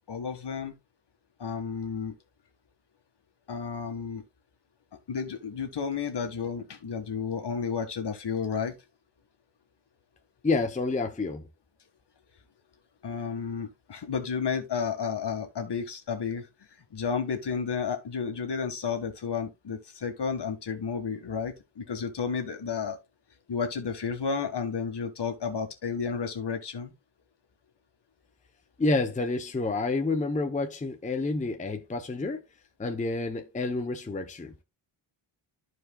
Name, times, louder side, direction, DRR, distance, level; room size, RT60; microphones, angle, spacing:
voice 1, 0.1-0.7 1.4-2.1 3.5-4.2 5.1-8.7 13.0-16.5 16.9-23.0 23.5-26.9, left 6 dB, 55° left, 1.7 m, -32 dB
voice 2, 10.4-11.4 28.8-32.4 32.8-34.5, left 3 dB, 15° left, 0.6 m, -29 dB
14.0 x 4.7 x 2.3 m
wide cardioid pair, 150°, 48 cm